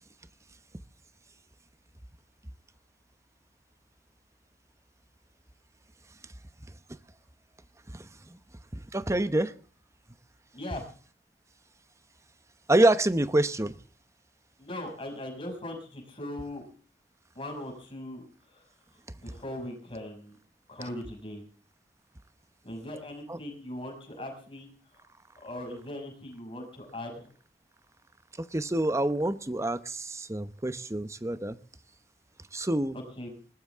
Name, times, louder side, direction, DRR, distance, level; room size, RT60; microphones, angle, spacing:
voice 1, 7.9-8.4 8.9-9.5 12.7-13.8 23.3-23.4 28.4-31.6 32.5-33.0, right 1 dB, 15° right, 13 dB, 0.8 m, -27 dB
voice 2, 10.5-10.9 14.6-16.6 17.3-18.6 19.2-20.4 20.7-21.4 22.6-24.7 25.4-27.3 33.2-33.3, left 1 dB, 30° left, 3 dB, 6.4 m, -39 dB
21.0 x 18.5 x 3.6 m, 0.39 s
head